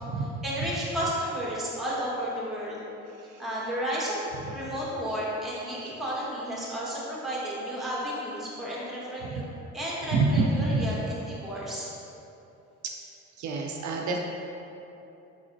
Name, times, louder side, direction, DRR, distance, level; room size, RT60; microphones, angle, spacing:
voice 1, 0.4-2.8 3.4-4.2 4.5-9.4 9.7-11.9, equal, ahead, -7 dB, 1.3 m, -32 dB
voice 2, 4.4-4.7 9.3-9.4 10.1-10.9 12.8-12.9 13.4-14.2, right 3 dB, 70° right, 1 dB, 0.5 m, -27 dB
4.8 x 3.9 x 2.6 m, 2.9 s
cardioid pair, 90°, 30 cm